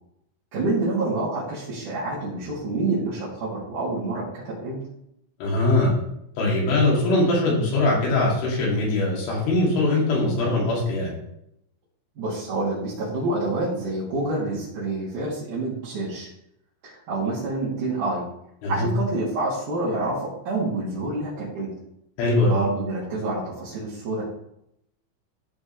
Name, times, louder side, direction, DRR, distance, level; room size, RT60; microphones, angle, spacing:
voice 1, 0.5-4.8 12.2-16.3 16.8-18.2 18.7-21.7 22.4-24.2, right 2 dB, 50° right, -11 dB, 3.7 m, -27 dB
voice 2, 5.4-5.9 6.4-11.1 18.6-18.9 22.2-22.6, left 2 dB, 85° left, -4 dB, 5.2 m, -21 dB
14.5 x 5.2 x 3.4 m, 0.77 s
omnidirectional pair, 5.4 m